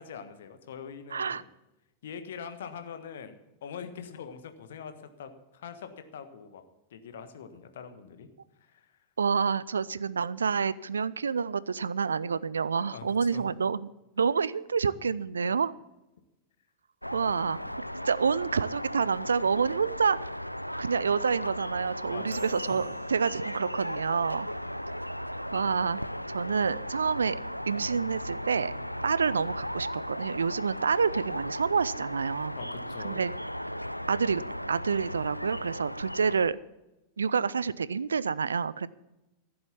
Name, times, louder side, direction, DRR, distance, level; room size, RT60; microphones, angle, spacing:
voice 1, 0.0-1.5 2.0-3.3 3.6-6.6 6.9-8.3 8.7-8.9 12.8-13.1 13.3-13.4 22.1-22.8 32.6-33.2, left 7 dB, 60° left, 8 dB, 1.4 m, -43 dB
voice 2, 1.1-1.4 9.2-15.7 17.1-17.6 18.0-20.2 20.8-24.5 25.5-26.0 26.3-27.4 27.7-28.7 29.0-32.6 33.0-33.3 34.1-34.4 34.7-36.6 37.2-38.9, right 5 dB, 70° right, 19 dB, 0.4 m, -28 dB
sound 1, 17.0-36.5, equal, 90° left, 0.4 m, -36 dB
sound 2, 22.3-25.2, right 15 dB, 50° right, 1.0 m, -57 dB
14.5 x 7.8 x 7.1 m, 0.97 s
figure-of-eight pair, 90°, 0 cm